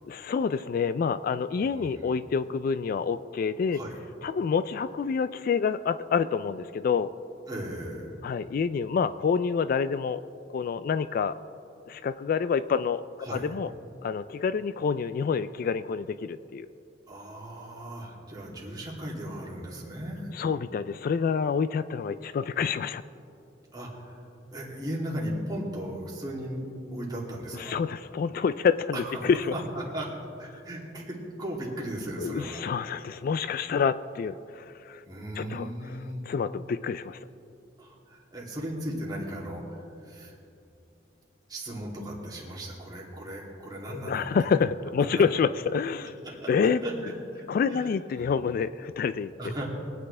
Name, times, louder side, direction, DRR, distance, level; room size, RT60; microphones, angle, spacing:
voice 1, 0.0-3.8 4.2-7.1 8.2-10.2 10.5-11.4 11.9-13.7 14.0-16.7 20.3-23.0 27.6-29.5 32.2-35.0 35.4-36.0 36.3-37.3 43.9-46.2 46.5-46.8 47.5-49.3, left 6 dB, 50° left, 14 dB, 0.3 m, -27 dB
voice 2, 1.6-2.0 3.7-4.0 7.5-8.2 13.2-13.5 17.1-20.3 23.7-24.3 24.5-26.6 26.9-28.0 28.9-30.1 30.4-32.6 35.1-36.2 37.8-40.3 41.5-44.4 45.2-45.3 46.2-46.5 46.8-47.9 48.2-48.3 49.4-49.7, right 1 dB, 25° right, -4 dB, 2.7 m, -37 dB
23.5 x 9.3 x 3.3 m, 2.7 s
head